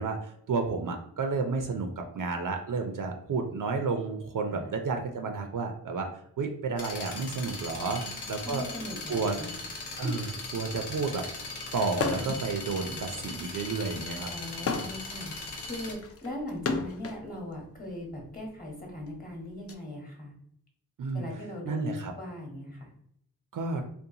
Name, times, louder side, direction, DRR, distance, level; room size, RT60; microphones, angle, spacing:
voice 1, 0.0-6.1 6.4-8.0 8.3-8.6 9.1-9.4 10.0-10.2 10.5-11.2 11.7-14.3 21.0-21.3 21.6-22.1 23.5-23.8, right 4 dB, 55° right, 4 dB, 0.5 m, -31 dB
sound 1, 6.8-15.9, left 3 dB, 75° left, 0.7 m, -39 dB
voice 2, 7.9-9.5 9.9-10.1 12.8-13.0 14.3-20.3 21.1-22.9, left 1 dB, 20° left, -1 dB, 1.1 m, -40 dB
sound 2, 11.9-12.5 12.8-17.2 18.1-19.7, left 4 dB, 40° left, 0.4 m, -34 dB
2.6 x 2.2 x 2.7 m, 0.68 s
cardioid pair, 45°, 39 cm